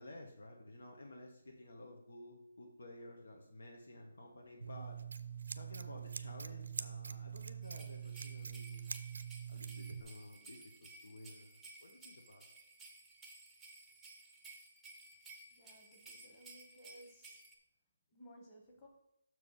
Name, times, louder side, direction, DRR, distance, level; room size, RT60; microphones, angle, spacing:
voice 1, 0.0-5.0 5.5-9.1 9.5-12.4, left 1 dB, 80° left, 1 dB, 1.5 m, -53 dB
Scissors, 4.6-10.0, right 7 dB, 65° right, 0.5 m, -44 dB
sound 1, 7.6-17.6, right 3 dB, ahead, 0.7 m, -57 dB
voice 2, 15.5-17.4 18.1-18.9, equal, 15° left, 0 dB, 1.3 m, -59 dB
6.4 x 4.8 x 5.6 m, 0.80 s
hypercardioid pair, 175°, 0 cm